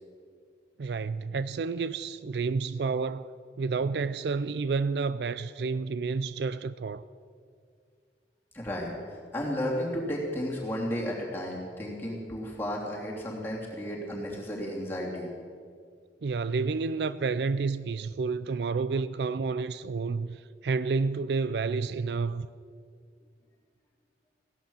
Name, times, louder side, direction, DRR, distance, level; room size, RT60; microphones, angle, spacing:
voice 1, 0.8-7.0 16.2-22.5, right 4 dB, 65° right, 0.4 m, -30 dB
voice 2, 8.5-15.3, equal, 10° left, 3.1 m, -33 dB
16.5 x 11.5 x 7.2 m
head